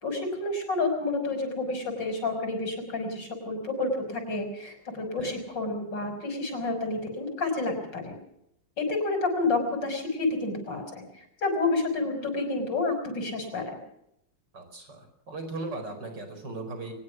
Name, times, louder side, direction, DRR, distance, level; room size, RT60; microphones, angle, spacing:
voice 1, 0.0-8.2 8.8-13.8, left 3 dB, 80° left, 5 dB, 6.2 m, -29 dB
voice 2, 14.5-16.9, right 2 dB, 75° right, 7 dB, 5.5 m, -38 dB
22.5 x 20.5 x 6.0 m, 0.78 s
omnidirectional pair, 1.9 m